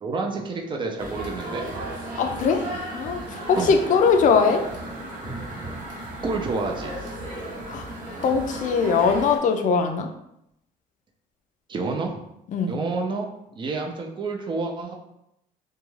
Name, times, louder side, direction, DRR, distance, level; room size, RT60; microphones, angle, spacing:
voice 1, 0.0-1.7 3.6-3.7 6.2-6.9 11.7-12.2 12.7-13.3 13.6-15.0, right 3 dB, 30° right, 2 dB, 0.5 m, -28 dB
sound 1, 1.0-9.4, right 1 dB, 50° right, 0.8 m, -35 dB
voice 2, 2.2-4.7 7.7-7.9 8.2-10.1 12.5-12.8, left 5 dB, 50° left, 5 dB, 0.4 m, -21 dB
2.4 x 2.2 x 3.1 m, 0.81 s
cardioid pair, 110°, 17 cm